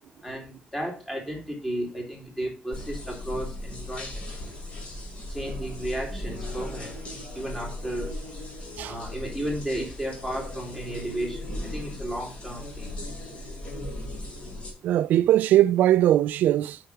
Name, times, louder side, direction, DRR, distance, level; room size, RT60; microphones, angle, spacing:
voice 1, 0.2-4.3 5.3-8.1 8.8-12.9, right 1 dB, 5° left, 3.4 m, -34 dB
sound 1, 2.7-14.7, left 1 dB, 40° left, 4.1 m, -37 dB
voice 2, 14.8-16.8, right 13 dB, 70° right, 0.3 m, -20 dB
7.5 x 6.7 x 5.8 m
cardioid pair, 160°, 3 cm